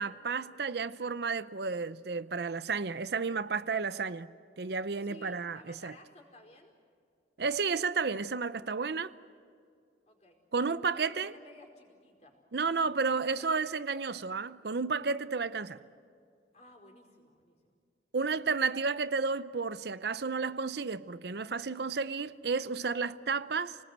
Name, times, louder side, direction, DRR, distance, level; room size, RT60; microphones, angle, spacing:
voice 1, 0.0-4.3 4.6-5.9 7.4-9.1 10.5-11.3 12.5-15.8 18.1-23.8, right 4 dB, 65° right, 0.6 m, -32 dB
voice 2, 5.0-6.7 10.1-10.4 10.8-12.4 13.2-13.6 16.5-17.7, left 2 dB, 35° left, 4.8 m, -55 dB
29.0 x 20.0 x 8.0 m
head